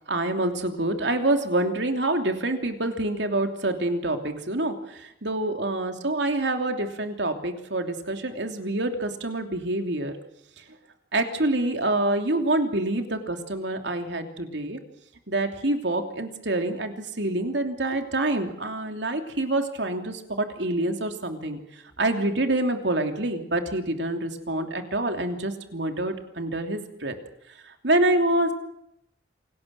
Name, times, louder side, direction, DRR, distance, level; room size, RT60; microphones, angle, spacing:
voice 1, 0.1-10.1 11.1-14.8 15.3-21.6 22.0-27.2 27.8-28.5, right 2 dB, 85° right, 5 dB, 3.0 m, -26 dB
28.0 x 19.0 x 7.7 m, 0.80 s
head